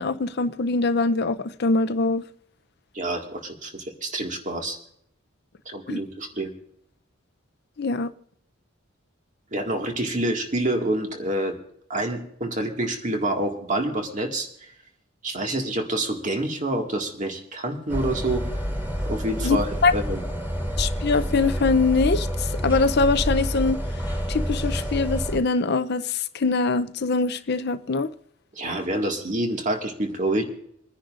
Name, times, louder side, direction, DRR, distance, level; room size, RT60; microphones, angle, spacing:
voice 1, 0.0-2.2 5.9-6.0 7.8-8.1 19.4-19.9 20.8-23.8 24.3-28.1, left 3 dB, 55° left, 0.6 m, -23 dB
voice 2, 2.9-4.8 5.7-6.5 9.5-11.6 11.9-14.5 15.2-18.4 19.1-20.2 28.6-30.4, right 1 dB, 40° right, 1.9 m, -27 dB
sound 1, 17.9-25.4, equal, 10° right, 2.3 m, -28 dB
28.0 x 10.0 x 2.5 m
head